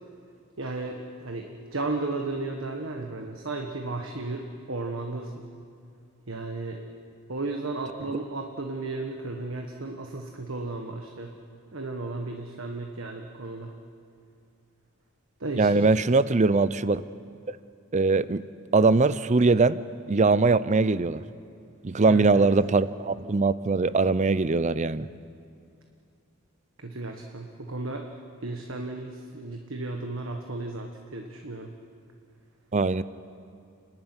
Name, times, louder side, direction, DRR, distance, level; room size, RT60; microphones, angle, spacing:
voice 1, 0.6-5.3 6.3-6.8 7.3-11.3 11.7-13.7 15.4-15.9 22.0-22.5 26.8-28.1 28.4-31.7, right 2 dB, 65° right, 3 dB, 1.5 m, -34 dB
voice 2, 15.6-17.0 17.5-17.6 17.9-18.4 18.7-19.8 20.1-21.2 21.8-25.1 32.7-33.0, right 3 dB, 35° right, 16 dB, 0.5 m, -21 dB
30.0 x 11.5 x 9.8 m, 2.4 s
head